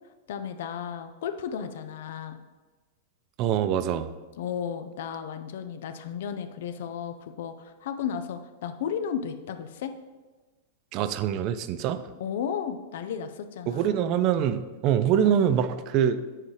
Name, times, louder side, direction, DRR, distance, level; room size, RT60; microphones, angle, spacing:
voice 1, 0.3-2.4 4.4-9.9 12.2-14.0, left 8 dB, 65° left, 10 dB, 0.5 m, -34 dB
voice 2, 3.4-4.1 10.9-12.0 13.7-16.2, right 9 dB, 45° right, 12 dB, 0.4 m, -24 dB
7.6 x 4.6 x 3.3 m, 1.3 s
hypercardioid pair, 100°, 0 cm